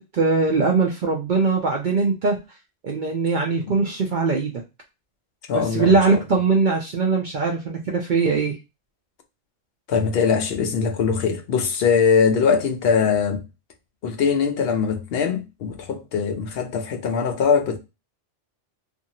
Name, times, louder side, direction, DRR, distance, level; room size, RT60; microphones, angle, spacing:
voice 1, 0.0-2.4 2.8-4.5 5.5-8.5, right 4 dB, 55° right, 0.5 m, -21 dB
voice 2, 5.5-6.2 9.9-13.4 14.0-17.8, left 6 dB, 60° left, 0.7 m, -21 dB
2.7 x 2.6 x 2.7 m
omnidirectional pair, 1.3 m